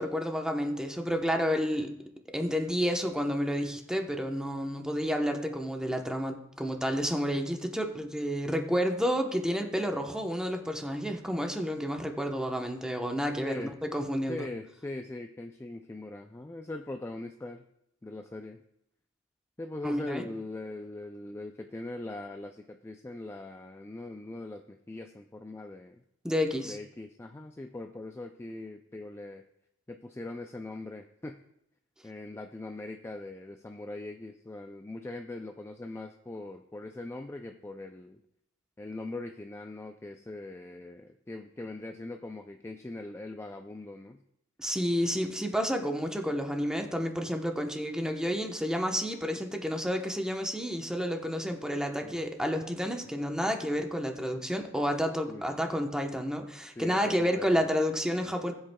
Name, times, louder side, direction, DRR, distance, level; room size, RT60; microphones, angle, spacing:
voice 1, 0.0-1.9 2.3-14.5 19.8-20.3 26.2-26.8 44.6-58.5, equal, 5° right, 3 dB, 0.9 m, -30 dB
voice 2, 13.4-13.7 14.3-17.6 18.0-18.6 19.6-26.0 26.6-29.4 29.9-31.4 32.0-38.2 38.8-44.2 52.0-52.2 55.3-55.5 56.8-57.7, left 2 dB, 15° left, 5 dB, 0.3 m, -41 dB
18.5 x 8.0 x 2.3 m, 0.78 s
head